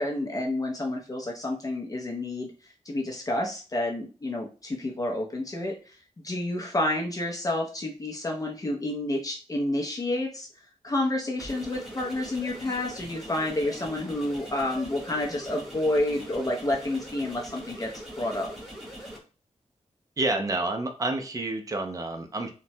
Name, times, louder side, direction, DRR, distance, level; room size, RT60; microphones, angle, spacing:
voice 1, 0.0-2.5 2.9-5.9 6.2-10.5 10.8-17.9 18.2-18.5, left 1 dB, 30° left, 0 dB, 0.5 m, -29 dB
sound 1, 11.4-19.2, equal, ahead, 0.9 m, -42 dB
voice 2, 20.2-22.5, right 2 dB, 30° right, 5 dB, 0.5 m, -29 dB
3.0 x 2.1 x 2.7 m, 0.35 s
wide cardioid pair, 130°, 13 cm